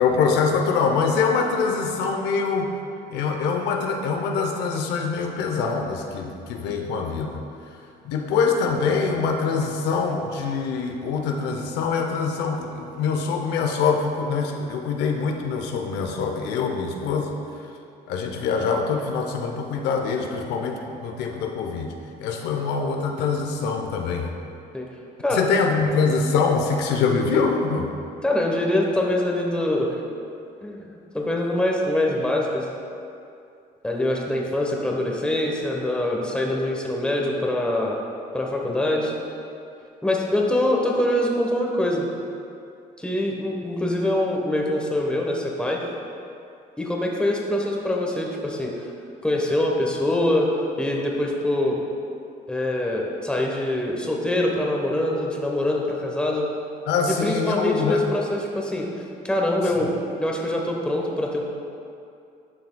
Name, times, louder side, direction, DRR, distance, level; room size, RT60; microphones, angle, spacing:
voice 1, 0.0-2.7 3.1-7.4 8.0-17.3 18.1-21.9 22.2-24.3 25.3-27.9 56.9-58.0, left 5 dB, 85° left, 3 dB, 0.7 m, -24 dB
voice 2, 28.2-29.9 30.6-32.7 33.8-38.0 38.3-39.1 40.0-42.1 43.0-45.8 46.8-48.9 49.2-50.5 50.8-51.8 52.5-56.5 57.0-58.9 59.2-59.9 60.2-61.4, left 1 dB, 5° left, -1 dB, 1.0 m, -24 dB
11.0 x 5.9 x 2.2 m, 2.6 s
cardioid pair, 110°, 17 cm